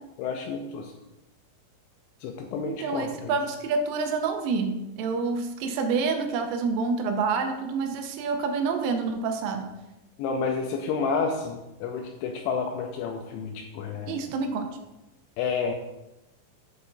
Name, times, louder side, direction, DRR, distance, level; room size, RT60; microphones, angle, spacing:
voice 1, 0.2-0.9 2.2-3.3 10.2-14.2 15.4-15.7, left 5 dB, 85° left, 3 dB, 2.7 m, -30 dB
voice 2, 2.6-9.7 14.1-14.7, right 4 dB, 85° right, 5 dB, 3.2 m, -28 dB
8.5 x 6.6 x 2.6 m, 0.96 s
omnidirectional pair, 5.8 m